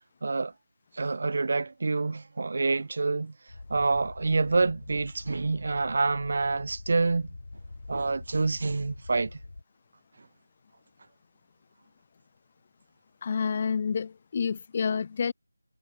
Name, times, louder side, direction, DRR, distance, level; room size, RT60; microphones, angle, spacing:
voice 1, 0.2-0.5 0.9-3.3 3.7-7.3 7.9-9.4, right 3 dB, 35° right, 1.2 m, -27 dB
sound 1, 3.5-9.6, left 2 dB, 50° left, 3.4 m, -45 dB
voice 2, 13.2-15.3, left 6 dB, 20° left, 0.4 m, -29 dB
figure-of-eight pair, 175°, 0 cm